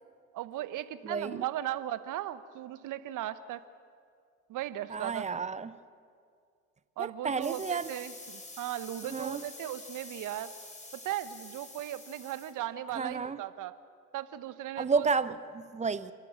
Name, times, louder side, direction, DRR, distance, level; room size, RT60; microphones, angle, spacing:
voice 1, 0.3-3.6 4.5-5.3 7.0-10.5 10.9-13.7 14.1-15.1, right 13 dB, 45° right, 14 dB, 1.2 m, -37 dB
voice 2, 1.0-1.4 4.9-5.8 7.0-7.9 9.1-9.4 12.9-13.4 14.8-16.1, right 5 dB, 15° right, 15 dB, 0.9 m, -31 dB
sound 1, 7.4-12.5, left 2 dB, 15° left, 3.7 m, -47 dB
29.0 x 14.0 x 7.4 m, 2.2 s
hypercardioid pair, 70°, 43 cm